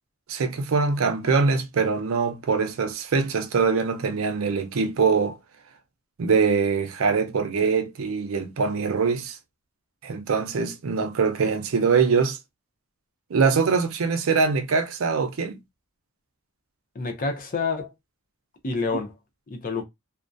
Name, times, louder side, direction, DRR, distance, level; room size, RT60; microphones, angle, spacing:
voice 1, 0.3-5.4 6.2-9.4 10.0-12.4 13.3-15.6 18.9-19.0, right 5 dB, 70° right, 0.5 m, -23 dB
voice 2, 16.9-17.9 18.6-19.1 19.5-19.8, left 4 dB, 40° left, 0.6 m, -28 dB
2.3 x 2.1 x 2.5 m
head